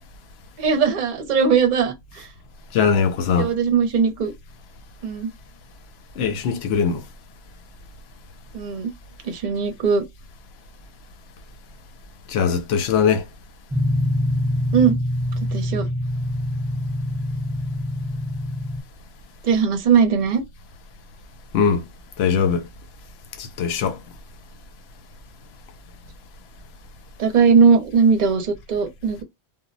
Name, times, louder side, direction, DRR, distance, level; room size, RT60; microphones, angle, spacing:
voice 1, 0.6-2.3 3.4-4.3 5.0-5.3 8.5-8.9 9.2-10.0 14.7-15.0 15.5-15.9 19.4-20.4 27.2-29.2, right 6 dB, 50° right, 0.7 m, -19 dB
voice 2, 2.7-3.5 6.2-7.0 12.3-13.2 21.5-21.9 22.2-22.7 23.4-24.0, left 6 dB, 80° left, 0.8 m, -21 dB
sound 1, 13.7-18.8, left 1 dB, 5° right, 0.6 m, -25 dB
2.1 x 2.1 x 3.8 m
omnidirectional pair, 1.1 m